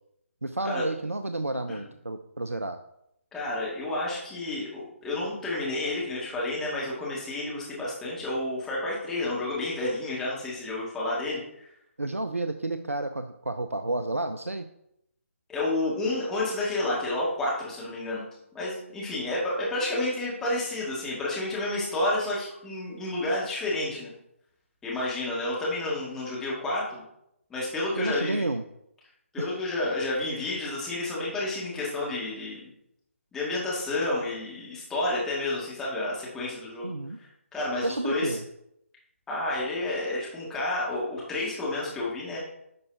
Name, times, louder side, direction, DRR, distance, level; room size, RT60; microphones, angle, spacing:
voice 1, 0.4-2.8 12.0-14.7 27.8-28.6 29.4-29.5 36.8-37.2 37.8-38.4, right 2 dB, 80° right, 9 dB, 0.5 m, -31 dB
voice 2, 3.3-11.7 15.5-18.2 18.5-24.1 24.8-26.8 27.5-28.4 29.3-32.7 33.3-36.9 37.2-38.4 39.3-42.4, left 2 dB, 5° left, -7 dB, 2.0 m, -30 dB
10.5 x 5.4 x 2.8 m, 0.79 s
figure-of-eight pair, 145°, 7 cm